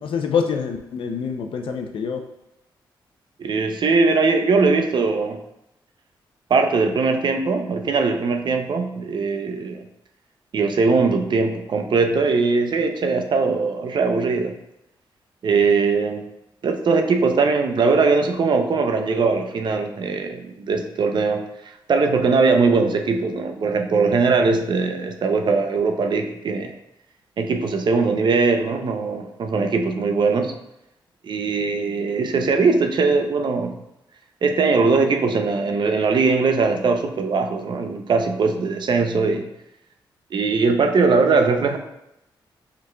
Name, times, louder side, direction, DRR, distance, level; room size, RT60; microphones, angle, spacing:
voice 1, 0.0-2.2, left 6 dB, 75° left, 4 dB, 0.6 m, -25 dB
voice 2, 3.4-5.4 6.5-9.8 10.5-14.5 15.4-16.2 16.6-21.4 21.9-26.7 27.4-30.5 31.2-33.8 34.4-39.5 40.3-41.8, right 4 dB, 60° right, 5 dB, 0.6 m, -20 dB
5.2 x 4.0 x 2.3 m, 0.86 s
cardioid pair, 65°, 9 cm